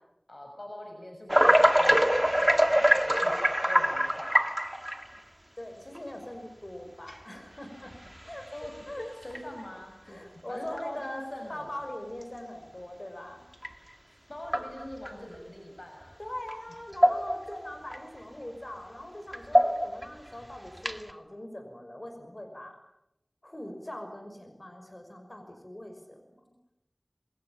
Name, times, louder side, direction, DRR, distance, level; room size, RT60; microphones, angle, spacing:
voice 1, 0.3-4.4 8.5-8.7 9.2-10.2 10.5-11.7 14.3-16.2, left 1 dB, 60° left, 2 dB, 6.4 m, -43 dB
sound 1, 1.3-5.2 5.9-6.0 7.1-7.2 7.9-8.2 8.6-8.7 9.2-9.4 10.7-10.8 13.6-13.7 14.4-15.1 16.5-16.6 16.9-17.5 17.9-18.0 19.3-20.1 20.8-21.1, equal, 15° right, 2.1 m, -24 dB
voice 2, 5.6-7.9 8.2-9.1 10.1-13.4 16.2-22.8 23.4-26.3, left 1 dB, 40° left, 5 dB, 6.1 m, -42 dB
27.5 x 23.0 x 8.9 m, 0.89 s
wide cardioid pair, 45°, 0 cm